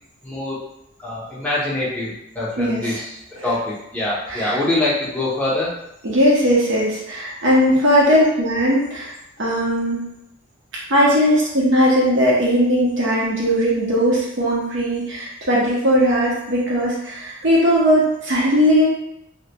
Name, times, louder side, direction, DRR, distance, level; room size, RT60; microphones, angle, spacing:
voice 1, 0.2-0.6 1.0-3.2 3.4-5.7 8.1-8.2, left 2 dB, 5° left, -7 dB, 0.6 m, -24 dB
voice 2, 6.0-9.1 9.4-10.1 10.9-18.9, equal, 60° right, -5 dB, 0.7 m, -18 dB
2.1 x 2.1 x 2.8 m, 0.82 s
head